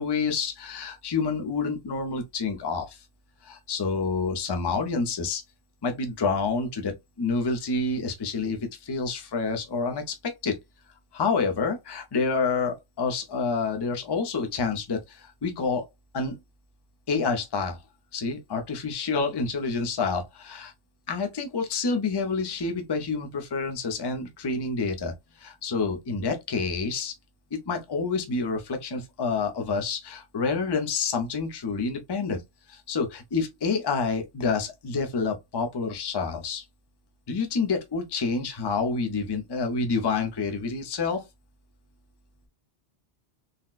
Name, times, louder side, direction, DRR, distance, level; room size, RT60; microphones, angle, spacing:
voice 1, 0.0-3.0 3.4-5.4 5.8-10.5 11.1-15.9 16.1-16.4 17.1-17.8 18.1-20.7 21.1-27.1 27.5-32.4 32.7-36.6 37.3-41.2, left 4 dB, 30° left, 0.5 m, -28 dB
4.1 x 2.1 x 2.4 m
omnidirectional pair, 1.1 m